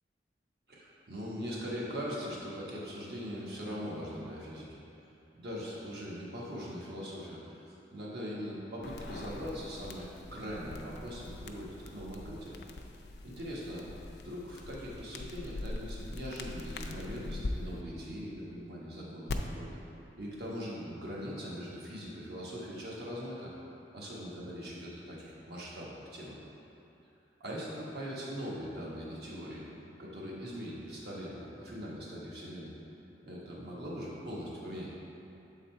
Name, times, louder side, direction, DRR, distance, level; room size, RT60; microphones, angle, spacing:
voice 1, 0.7-4.8 5.3-12.6 13.2-13.9 14.2-19.8 20.2-23.5 23.9-26.4 27.4-29.6 30.0-32.7 33.2-34.9, equal, 60° right, -5 dB, 1.3 m, -41 dB
sound 1, 8.8-17.5 19.3-19.4, left 2 dB, 70° left, 0.4 m, -43 dB
7.2 x 4.0 x 4.4 m, 2.9 s
head